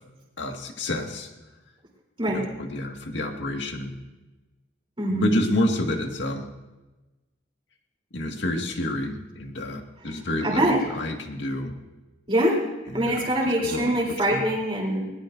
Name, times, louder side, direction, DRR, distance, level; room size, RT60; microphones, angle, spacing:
voice 1, 0.4-1.3 2.3-4.0 5.1-6.5 8.1-11.7 12.9-13.3 13.6-14.4, left 1 dB, 75° left, 3 dB, 1.8 m, -29 dB
voice 2, 5.0-5.3 10.4-10.8 12.3-12.6 12.9-15.0, right 1 dB, 25° right, -2 dB, 3.4 m, -23 dB
21.0 x 18.5 x 2.6 m, 1.1 s
head